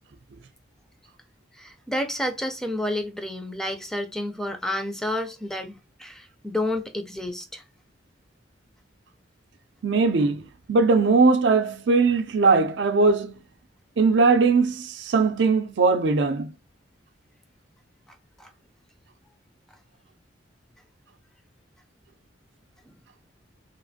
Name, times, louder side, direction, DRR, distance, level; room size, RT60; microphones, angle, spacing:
voice 1, 1.6-7.6 18.4-18.5, left 1 dB, 5° left, 0.4 m, -30 dB
voice 2, 9.8-13.4 14.0-16.5, right 4 dB, 70° right, 0.4 m, -20 dB
3.2 x 2.4 x 2.6 m
head